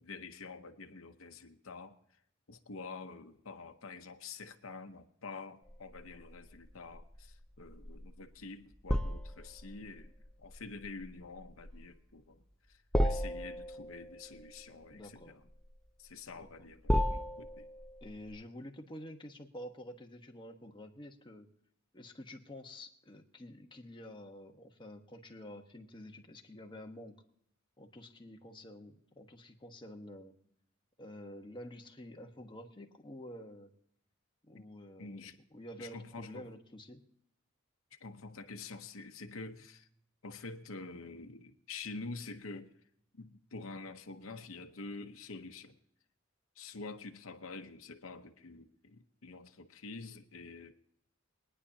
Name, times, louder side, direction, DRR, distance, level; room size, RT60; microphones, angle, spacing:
voice 1, 0.0-1.9 2.5-10.1 10.4-12.4 12.7-15.4 16.0-17.7 18.3-18.4 34.5-34.6 35.0-35.4 35.8-36.5 38.0-39.9 40.2-42.7 43.1-45.8 46.6-50.7, left 3 dB, 80° left, 5 dB, 0.9 m, -47 dB
sound 1, 5.7-18.4, equal, 5° left, 0.5 m, -36 dB
voice 2, 14.9-15.4 16.3-16.5 18.0-21.5 21.9-27.2 27.8-30.3 31.0-33.7 34.5-37.0, left 1 dB, 25° left, 3 dB, 1.2 m, -49 dB
23.0 x 10.0 x 2.8 m, 0.69 s
head